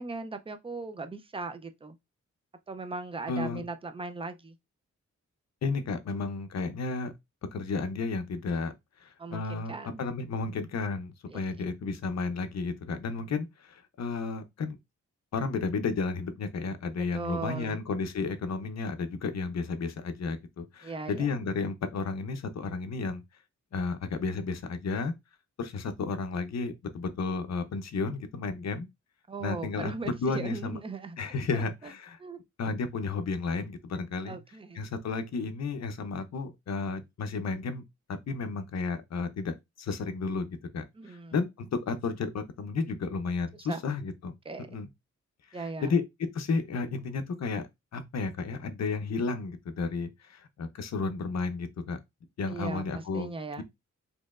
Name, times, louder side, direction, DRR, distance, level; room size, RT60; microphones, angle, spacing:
voice 1, 0.0-2.0 2.7-4.5 9.2-10.0 11.3-11.4 17.1-17.8 20.8-21.4 29.3-31.2 31.5-31.9 32.2-32.4 34.2-34.8 40.9-41.3 43.6-43.8 44.4-44.8 45.5-45.9 52.5-53.6, right 3 dB, 20° right, 0.4 m, -38 dB
voice 2, 3.3-3.6 5.6-7.1 7.5-8.7 9.0-14.8 15.3-23.2 23.7-25.1 25.6-28.9 29.4-30.8 31.2-32.2 32.6-34.4 34.7-37.8 38.3-40.5 40.7-44.3 44.7-44.9 45.6-46.0 46.3-52.0 52.4-53.3, left 4 dB, 60° left, 0.7 m, -32 dB
4.2 x 2.9 x 2.4 m
wide cardioid pair, 140°, 30 cm